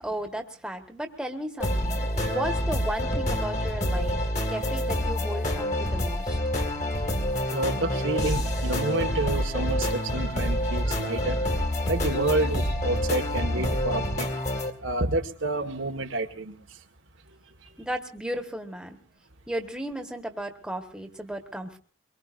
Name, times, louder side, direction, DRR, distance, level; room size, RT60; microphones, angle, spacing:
voice 1, 0.0-6.4 17.8-19.0 19.5-21.8, equal, 5° right, 4 dB, 1.5 m, -35 dB
sound 1, 1.6-14.7, left 1 dB, 35° left, 2.2 m, -27 dB
voice 2, 2.2-2.5 6.8-6.9 7.5-11.4 11.9-14.3 14.8-16.6, right 2 dB, 85° right, 4 dB, 1.8 m, -29 dB
24.0 x 23.0 x 2.6 m, 0.42 s
head